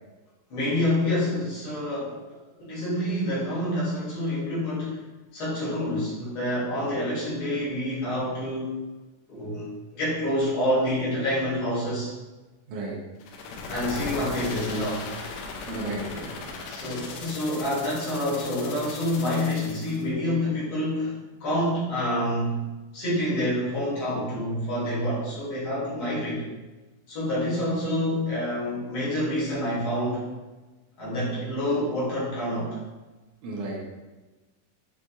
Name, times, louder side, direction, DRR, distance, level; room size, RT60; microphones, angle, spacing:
voice 1, 0.5-5.0 5.3-8.8 9.3-12.1 13.7-15.1 16.7-22.7 22.9-26.5 27.1-30.3 31.0-32.8, left 1 dB, 60° left, -8 dB, 1.0 m, -27 dB
voice 2, 12.7-13.0 15.7-16.3 33.4-33.8, right 2 dB, 85° right, -2 dB, 1.4 m, -33 dB
sound 1, 13.2-20.0, left 4 dB, 90° left, 1.5 m, -38 dB
6.0 x 2.3 x 2.6 m, 1.2 s
omnidirectional pair, 3.6 m